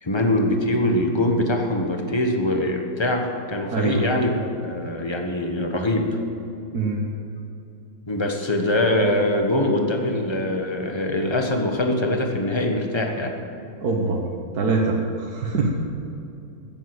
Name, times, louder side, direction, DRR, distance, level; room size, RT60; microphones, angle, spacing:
voice 1, 0.0-6.2 8.1-13.3, left 1 dB, 20° left, 3 dB, 0.9 m, -23 dB
voice 2, 3.7-4.3 6.7-7.0 13.8-14.2 14.5-15.7, right 3 dB, 55° right, -1 dB, 1.5 m, -23 dB
15.0 x 7.5 x 7.9 m, 2.7 s
omnidirectional pair, 2.2 m